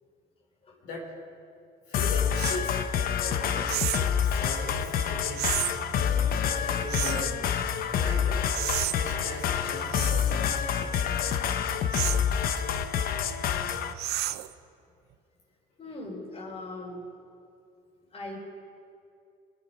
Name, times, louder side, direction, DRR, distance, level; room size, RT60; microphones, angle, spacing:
voice 1, 0.8-1.2 1.9-2.8 3.3-3.9 4.2-7.4 7.9-11.2 12.1-12.2, left 2 dB, 75° left, -2 dB, 3.4 m, -40 dB
sound 1, 1.9-13.9, left 8 dB, 60° left, 0.8 m, -27 dB
sound 2, 2.4-2.6 3.7-4.1 5.4-5.7 6.9-7.3 8.5-9.0 9.9-10.3 11.9-12.3 14.0-14.5, right 14 dB, 75° right, 0.6 m, -31 dB
voice 2, 15.8-17.0 18.1-18.4, left 2 dB, 35° left, -1 dB, 3.9 m, -39 dB
21.5 x 9.4 x 5.4 m, 2.6 s
cardioid pair, 110°, 17 cm